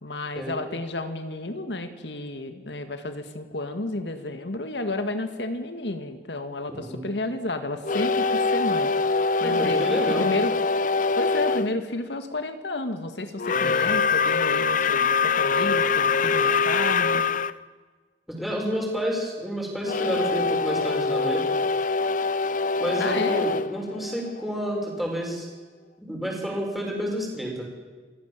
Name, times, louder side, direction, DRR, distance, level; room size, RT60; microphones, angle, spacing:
voice 1, 0.0-8.9 9.4-9.8 10.2-10.5 11.2-17.2 23.0-23.5, left 2 dB, 80° left, 8 dB, 1.9 m, -31 dB
voice 2, 6.7-7.0 9.4-10.3 13.5-13.8 18.3-21.4 22.8-25.5 26.0-27.7, equal, ahead, -2 dB, 6.8 m, -30 dB
sound 1, 7.8-11.7 13.4-17.5 19.8-24.7, left 4 dB, 50° left, 0.6 m, -24 dB
28.0 x 17.5 x 7.5 m, 1.4 s
head